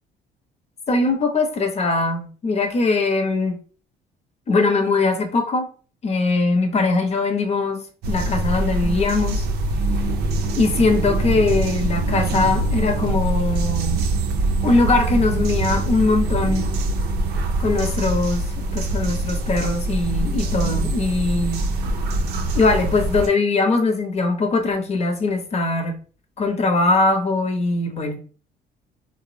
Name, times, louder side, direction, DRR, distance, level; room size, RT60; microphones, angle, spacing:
voice 1, 0.9-3.6 4.5-5.7 6.0-9.4 10.6-14.0 14.6-16.7 17.6-21.6 22.5-25.9 26.4-28.2, left 3 dB, 40° left, 0.7 m, -21 dB
sound 1, 8.0-23.3, right 2 dB, 75° right, 0.5 m, -23 dB
3.5 x 2.0 x 2.5 m
cardioid pair, 110°, 17 cm